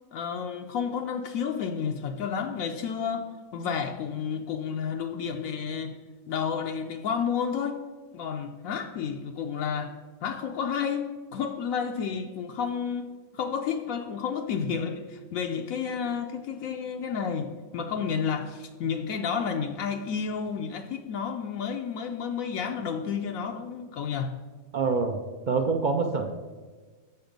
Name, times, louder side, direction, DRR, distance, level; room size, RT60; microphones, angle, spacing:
voice 1, 0.1-6.0 6.3-7.9 8.1-9.9 10.2-24.3, left 6 dB, 75° left, 4 dB, 1.0 m, -31 dB
voice 2, 24.7-25.2 25.5-26.3, right 4 dB, 55° right, 6 dB, 0.5 m, -25 dB
7.0 x 6.8 x 5.1 m, 1.4 s
omnidirectional pair, 1.5 m